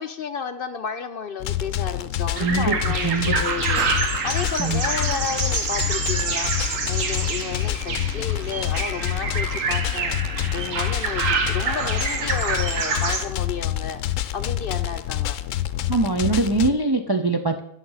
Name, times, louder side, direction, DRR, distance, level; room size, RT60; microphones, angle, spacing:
voice 1, 0.0-3.9 4.2-6.5 6.9-15.4, left 6 dB, 60° left, 10 dB, 0.6 m, -32 dB
sound 1, 1.4-16.7, left 12 dB, 80° left, 1.0 m, -27 dB
voice 2, 2.4-2.7 3.0-3.3 4.6-4.8 15.9-17.6, right 3 dB, 40° right, 5 dB, 0.3 m, -22 dB
sound 2, 2.4-13.2, right 5 dB, 80° right, 1.5 m, -27 dB
sound 3, 3.7-4.5 5.0-5.1 5.6-6.5, left 1 dB, ahead, 4.1 m, -39 dB
9.7 x 6.5 x 5.5 m, 0.74 s
omnidirectional pair, 1.3 m